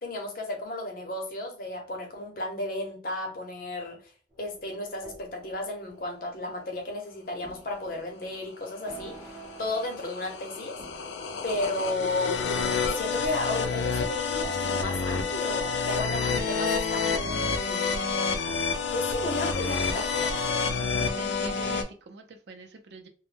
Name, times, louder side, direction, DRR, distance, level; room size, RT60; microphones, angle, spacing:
voice 1, 0.0-4.0 4.4-9.2 9.6-10.8 11.4-17.9 18.9-20.6, left 2 dB, 50° left, 0.7 m, -33 dB
sound 1, 4.3-6.8 7.4-12.9 13.7-20.7, right 3 dB, 5° right, 0.9 m, -49 dB
sound 2, 8.8-21.8, left 5 dB, 75° left, 0.4 m, -29 dB
voice 2, 20.5-23.1, right 3 dB, 70° right, 0.4 m, -44 dB
2.1 x 2.1 x 3.2 m
head